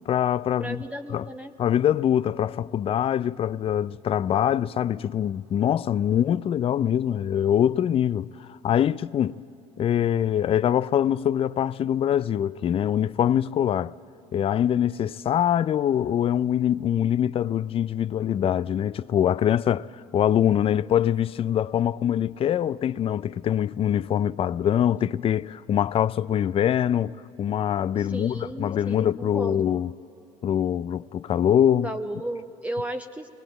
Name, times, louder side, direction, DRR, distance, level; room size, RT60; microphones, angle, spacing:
voice 1, 0.1-0.8 1.1-1.3 1.6-8.3 8.6-9.4 9.8-13.9 14.3-29.9 30.4-31.9, left 10 dB, 35° left, 0.4 m, -24 dB
voice 2, 0.6-1.5 27.9-29.7 31.8-33.3, right 1 dB, 10° right, 0.8 m, -34 dB
21.0 x 19.5 x 7.8 m
hypercardioid pair, 65°, 16 cm